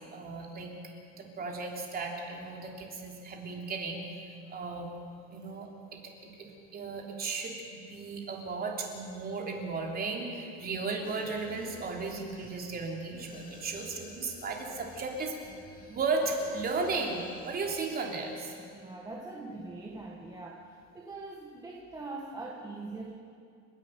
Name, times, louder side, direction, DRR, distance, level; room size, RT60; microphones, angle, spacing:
voice 1, 0.1-0.7 1.1-4.2 4.5-4.9 5.3-6.1 6.4-15.3 15.9-18.5, right 3 dB, 30° right, 1 dB, 3.1 m, -35 dB
sound 1, 11.0-18.4 18.7-18.8, left 3 dB, 25° left, 2.4 m, -52 dB
voice 2, 18.7-20.7 20.9-23.1, right 3 dB, 10° right, -1 dB, 1.4 m, -42 dB
30.0 x 11.0 x 9.0 m, 2.4 s
cardioid pair, 165°, 33 cm